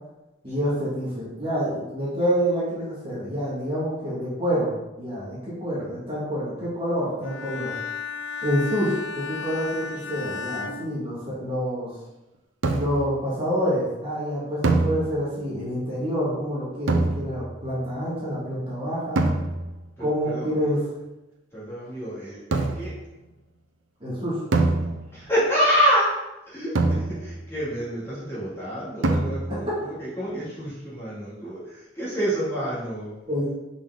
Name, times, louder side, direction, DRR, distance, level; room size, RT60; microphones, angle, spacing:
voice 1, 0.4-4.7 5.0-7.7 8.4-11.9 12.7-19.2 20.0-20.8 24.0-24.4 33.3-33.5, equal, 30° right, -8 dB, 1.9 m, -27 dB
Bowed string instrument, 7.2-11.7, left 5 dB, 75° left, 0.5 m, -34 dB
sound 1, 12.6-13.2 14.6-15.5 16.9-17.6 19.2-19.9 22.5-23.1 24.5-25.4 26.7-27.5 29.0-29.7, right 2 dB, 85° right, 0.7 m, -25 dB
voice 2, 20.0-20.8 21.5-22.9 25.1-26.1 26.5-33.2, equal, 15° left, -9 dB, 2.3 m, -27 dB
5.3 x 5.2 x 3.8 m, 0.98 s
head